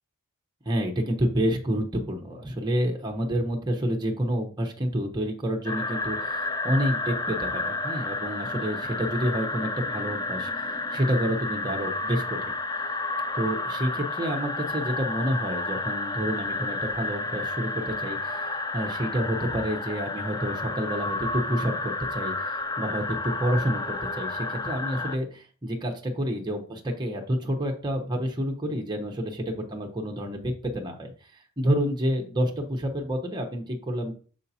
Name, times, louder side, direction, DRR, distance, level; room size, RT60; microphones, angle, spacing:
voice 1, 0.7-12.5 13.3-31.1 31.6-34.1, equal, 20° right, 2 dB, 0.9 m, -29 dB
sound 1, 5.7-25.2, left 2 dB, 15° left, 0.4 m, -31 dB
6.8 x 5.4 x 2.8 m, 0.40 s
head